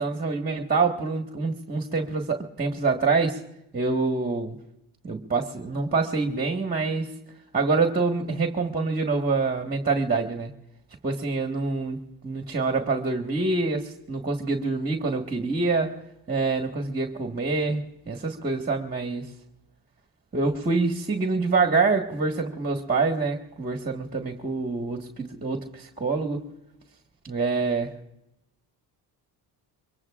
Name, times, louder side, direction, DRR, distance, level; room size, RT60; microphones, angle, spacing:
voice 1, 0.0-3.4 3.7-4.5 5.0-7.1 7.5-10.5 11.0-16.0 16.3-19.3 20.3-26.5 27.2-27.9, right 4 dB, 20° right, 1.6 m, -26 dB
24.0 x 21.5 x 2.5 m
cardioid pair, 100°, 42 cm